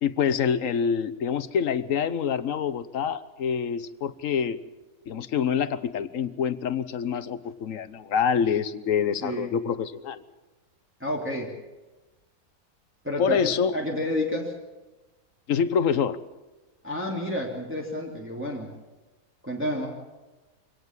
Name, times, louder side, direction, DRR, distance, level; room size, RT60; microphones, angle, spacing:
voice 1, 0.0-4.6 5.1-10.2 13.2-13.7 15.5-16.2, left 7 dB, 65° left, 14 dB, 1.2 m, -26 dB
voice 2, 9.2-9.5 11.0-11.5 13.0-14.5 16.8-18.7 19.4-19.9, left 1 dB, 10° right, -2 dB, 2.9 m, -30 dB
24.5 x 18.0 x 7.4 m, 1.1 s
omnidirectional pair, 1.5 m